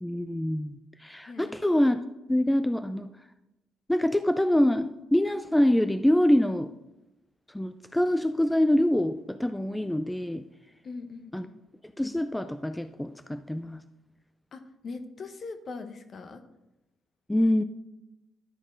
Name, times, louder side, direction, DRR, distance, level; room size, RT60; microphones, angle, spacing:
voice 1, 0.0-2.0 2.3-3.1 3.9-6.7 7.5-10.4 11.3-11.5 12.0-13.8 17.3-17.6, left 1 dB, 5° left, 10 dB, 0.3 m, -25 dB
voice 2, 10.8-11.6 14.5-16.4, left 4 dB, 50° left, 9 dB, 0.9 m, -41 dB
11.5 x 4.4 x 4.5 m, 0.95 s
cardioid pair, 90°, 0 cm